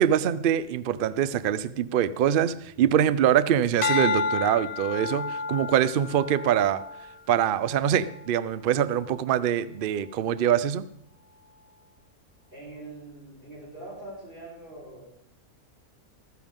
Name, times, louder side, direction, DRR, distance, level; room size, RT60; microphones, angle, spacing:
voice 1, 0.0-6.8 7.3-10.9, right 10 dB, 65° right, 16 dB, 0.5 m, -24 dB
sound 1, 3.8-8.3 8.8-9.2, left 4 dB, 60° left, 0.4 m, -31 dB
voice 2, 12.5-15.0, right 2 dB, 35° right, -6 dB, 4.5 m, -43 dB
14.0 x 14.0 x 3.6 m, 0.72 s
omnidirectional pair, 1.6 m